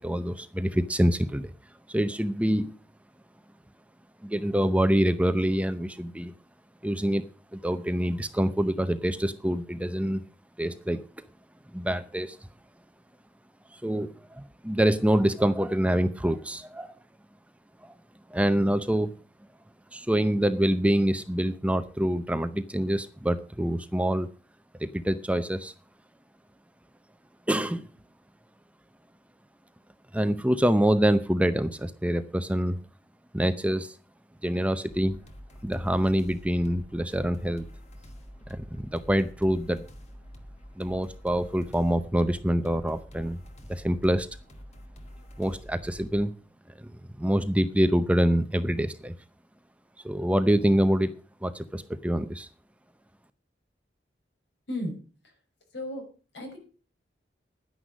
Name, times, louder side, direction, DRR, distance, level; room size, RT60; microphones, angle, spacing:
voice 1, 0.0-1.5 1.9-2.8 4.2-6.3 6.8-7.3 7.5-10.2 10.6-11.0 11.7-12.4 13.7-16.9 17.8-17.9 18.3-19.1 19.9-24.3 24.8-25.7 27.5-27.9 30.1-32.8 33.3-34.0 34.4-35.2 35.6-37.7 38.5-39.9 40.8-43.4 43.7-44.3 45.4-46.3 46.8-46.9 47.2-49.1 50.0-51.1 51.4-52.5, equal, 5° right, 11 dB, 0.7 m, -26 dB
sound 1, 34.9-46.2, equal, 40° left, 1.9 m, -47 dB
voice 2, 54.7-55.0 55.7-56.0 56.3-56.6, left 1 dB, 70° left, 3 dB, 6.0 m, -33 dB
11.0 x 10.0 x 6.3 m, 0.36 s
head